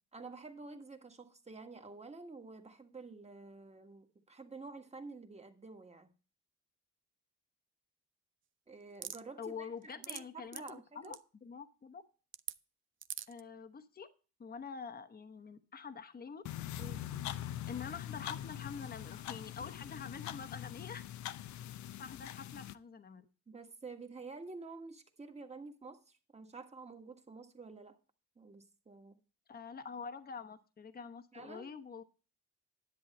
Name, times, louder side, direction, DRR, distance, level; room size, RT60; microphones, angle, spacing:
voice 1, 0.1-6.1 8.7-11.2 16.8-17.0 23.5-28.0 28.3-29.2 31.3-31.7, right 3 dB, 20° right, 1.5 m, -50 dB
sound 1, 9.0-9.2 9.8-10.2 10.5-10.7 11.0-11.2 12.3-12.5 13.0-13.4, right 10 dB, 40° right, 0.5 m, -41 dB
voice 2, 9.4-12.0 13.3-14.1 14.4-16.4 17.7-21.1 22.0-23.2 29.5-32.0, left 6 dB, 30° left, 1.0 m, -46 dB
sound 2, 16.4-22.7, left 12 dB, 70° left, 0.6 m, -43 dB
10.5 x 7.8 x 4.2 m
cardioid pair, 90°, 30 cm